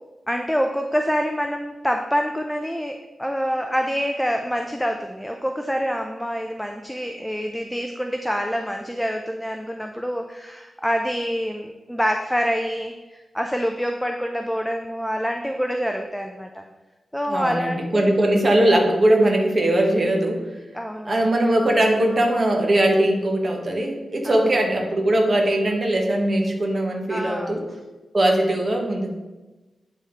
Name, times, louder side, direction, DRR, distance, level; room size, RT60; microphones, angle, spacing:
voice 1, 0.3-16.6 17.1-18.2 20.7-21.3 24.2-24.5 27.1-27.6, equal, ahead, 3 dB, 0.4 m, -26 dB
voice 2, 17.3-20.4 21.0-27.6 28.1-29.1, right 1 dB, 35° right, 1 dB, 1.1 m, -20 dB
9.0 x 3.5 x 4.4 m, 1.1 s
wide cardioid pair, 150°, 0 cm